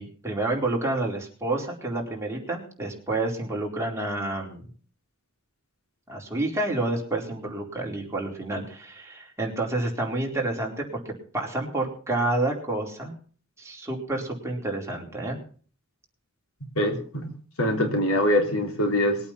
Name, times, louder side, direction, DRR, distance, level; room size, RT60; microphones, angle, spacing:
voice 1, 0.0-4.6 6.1-11.0 11.3-13.1 13.6-15.4, right 2 dB, 15° right, -2 dB, 4.4 m, -29 dB
voice 2, 16.8-17.3 17.6-19.2, left 1 dB, 90° left, 4 dB, 3.6 m, -23 dB
21.5 x 8.7 x 5.9 m, 0.43 s
head